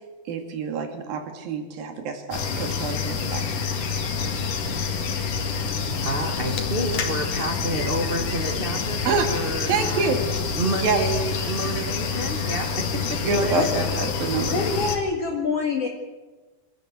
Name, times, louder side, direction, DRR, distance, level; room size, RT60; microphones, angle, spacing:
voice 1, 0.3-3.7 9.1-9.3 9.7-10.2 10.7-11.0 13.3-14.6, right 4 dB, 80° right, 5 dB, 4.1 m, -27 dB
sound 1, 2.3-15.0, left 5 dB, 65° left, 3.6 m, -27 dB
voice 2, 6.0-10.2 10.6-14.1, right 1 dB, 40° right, 3 dB, 0.8 m, -29 dB
voice 3, 14.5-15.9, left 4 dB, 45° left, -1 dB, 2.8 m, -25 dB
25.5 x 14.0 x 8.2 m, 1.2 s
omnidirectional pair, 4.1 m